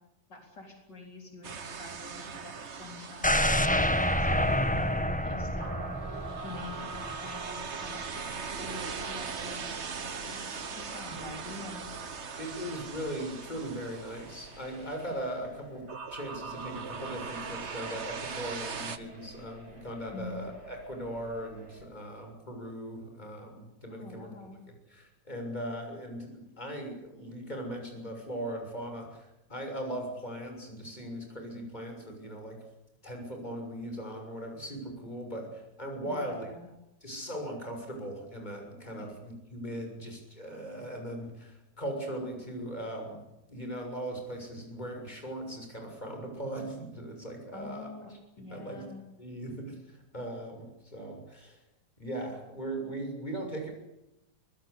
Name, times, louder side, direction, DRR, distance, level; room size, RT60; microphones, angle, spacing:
voice 1, 0.3-5.9 6.4-11.9 20.1-20.5 23.9-24.5 36.0-36.7 39.0-39.1 47.5-48.1 48.4-49.0, left 3 dB, 70° left, 2 dB, 4.6 m, -46 dB
sound 1, 1.4-4.8 5.6-15.2 15.9-19.0, right 5 dB, 40° right, 1.5 m, -40 dB
sound 2, 3.2-7.2 7.6-7.7, equal, 5° left, 0.9 m, -28 dB
sound 3, 4.2-21.9, right 2 dB, 85° right, 6.6 m, -53 dB
voice 2, 12.4-24.3 24.9-32.6 33.0-36.5 37.0-47.9 48.5-48.9 49.2-51.6 52.0-53.7, right 1 dB, 20° left, 3 dB, 6.9 m, -39 dB
24.0 x 20.0 x 8.4 m, 0.89 s
omnidirectional pair, 2.0 m